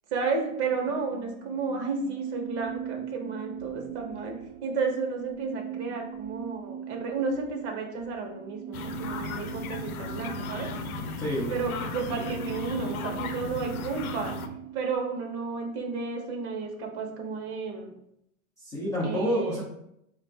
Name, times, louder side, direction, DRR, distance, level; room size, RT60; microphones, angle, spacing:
voice 1, 0.1-10.7 11.5-14.3 14.7-17.9 19.0-19.6, right 4 dB, 55° right, 2 dB, 1.0 m, -32 dB
sound 1, 0.7-15.0, right 10 dB, 80° right, 0.6 m, -40 dB
sound 2, 8.7-14.5, left 5 dB, 90° left, 0.6 m, -36 dB
voice 2, 11.2-11.6 18.6-19.6, equal, 10° left, -10 dB, 0.3 m, -28 dB
3.9 x 2.5 x 3.2 m, 0.77 s
hypercardioid pair, 135°, 42 cm